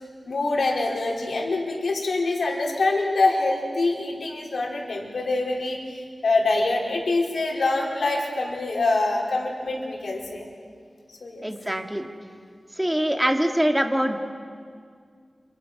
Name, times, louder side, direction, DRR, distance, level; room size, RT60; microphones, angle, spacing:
voice 1, 0.2-10.5 11.1-11.4, left 2 dB, 80° left, -1 dB, 4.7 m, -25 dB
voice 2, 11.4-12.1 12.8-14.2, equal, 10° right, 4 dB, 2.2 m, -23 dB
30.0 x 27.0 x 6.2 m, 2.1 s
wide cardioid pair, 85°, 0 cm